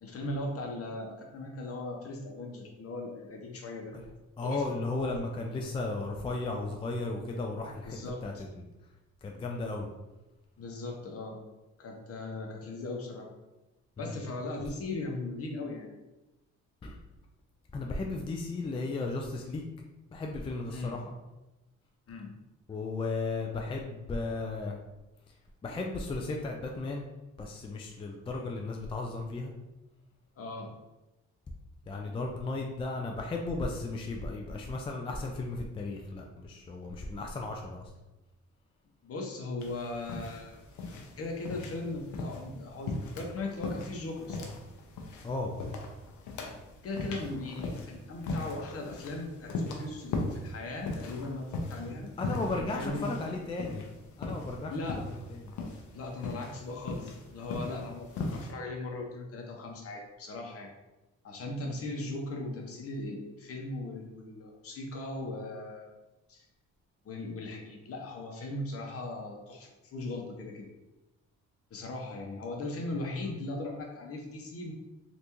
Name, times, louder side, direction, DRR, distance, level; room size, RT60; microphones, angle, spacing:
voice 1, 0.0-4.0 4.4-4.7 7.9-8.4 10.6-11.4 11.8-13.3 14.0-15.9 20.7-21.0 22.1-22.3 30.4-30.8 39.0-40.6 41.2-44.5 46.8-53.1 54.7-55.0 55.9-60.7 61.2-65.9 66.3-66.4 67.0-70.7 71.7-74.7, left 2 dB, 50° left, 1 dB, 0.8 m, -38 dB
voice 2, 4.4-8.7 9.2-9.9 14.0-14.2 16.8-17.0 17.7-19.7 20.1-21.1 22.7-24.8 25.6-27.0 27.4-29.5 31.9-37.9 45.2-45.6 52.2-53.8 54.2-54.7 55.1-55.6 72.9-73.3, left 3 dB, 20° left, 1 dB, 0.3 m, -35 dB
sound 1, 39.6-58.5, left 3 dB, 75° left, 0.6 m, -39 dB
3.4 x 2.5 x 2.9 m, 1.0 s
cardioid pair, 90°, 30 cm